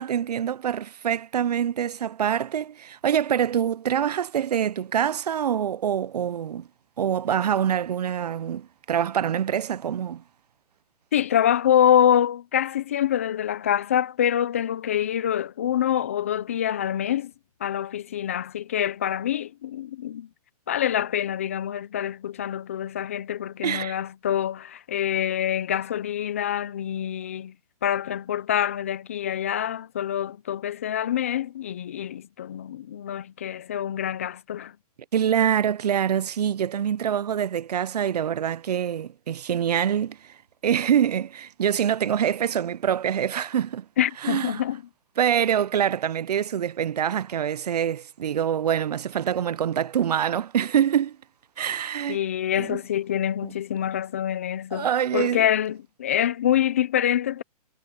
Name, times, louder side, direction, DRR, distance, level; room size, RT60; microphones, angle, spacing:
voice 1, 0.0-6.7 7.0-10.2 23.6-24.0 35.1-40.4 40.6-43.9 44.2-44.6 45.2-51.2 51.6-52.2 52.6-52.8 53.4-53.5 54.7-55.5, right 9 dB, 85° right, 0.6 m, -25 dB
voice 2, 11.1-17.3 17.6-20.3 20.7-27.5 27.8-34.7 44.0-44.8 52.1-54.9 55.1-57.4, left 10 dB, 20° left, 0.5 m, -25 dB
hypercardioid pair, 175°, 20 cm